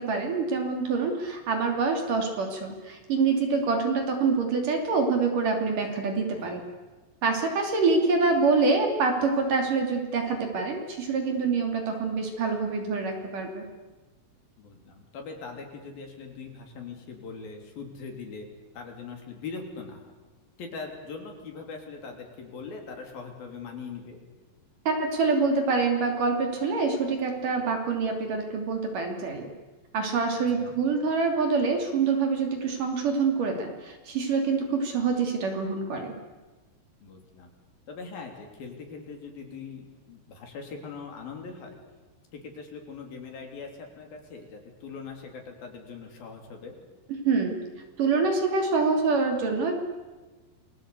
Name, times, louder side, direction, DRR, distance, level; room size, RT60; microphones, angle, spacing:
voice 1, 0.0-6.6 7.2-13.6 24.9-29.5 29.9-36.1 47.2-47.6 48.0-49.7, right 4 dB, 55° right, 3 dB, 4.2 m, -26 dB
voice 2, 14.6-18.5 18.7-20.0 20.6-24.2 30.4-30.7 37.0-37.5 37.9-41.8 42.3-46.8, left 5 dB, 60° left, 3 dB, 5.0 m, -41 dB
29.0 x 21.5 x 8.3 m, 1.2 s
omnidirectional pair, 4.8 m